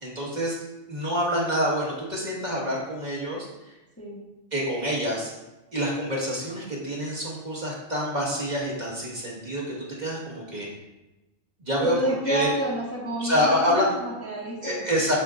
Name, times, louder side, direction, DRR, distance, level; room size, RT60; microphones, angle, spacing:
voice 1, 0.0-0.6 0.9-3.7 4.5-5.3 5.7-10.7 11.7-12.0 12.3-12.5 13.2-13.9 14.6-15.1, equal, 35° right, -4 dB, 1.8 m, -27 dB
voice 2, 11.8-15.0, right 1 dB, 10° left, -5 dB, 1.2 m, -30 dB
7.5 x 7.0 x 2.5 m, 1.0 s
omnidirectional pair, 1.4 m